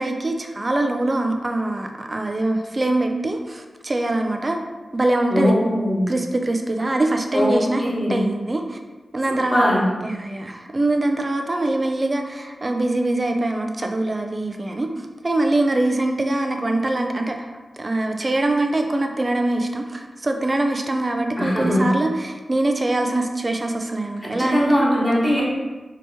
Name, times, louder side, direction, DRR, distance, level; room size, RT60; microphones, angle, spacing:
voice 1, 0.0-4.6 4.9-5.6 6.1-8.8 9.1-9.7 10.0-24.9, right 2 dB, 30° right, 4 dB, 0.4 m, -23 dB
voice 2, 5.3-6.1 7.3-7.5 7.8-8.2 9.3-9.8 21.4-21.9 24.2-25.4, equal, 15° left, -7 dB, 1.2 m, -21 dB
2.9 x 2.8 x 3.4 m, 1.2 s
wide cardioid pair, 85°, 0 cm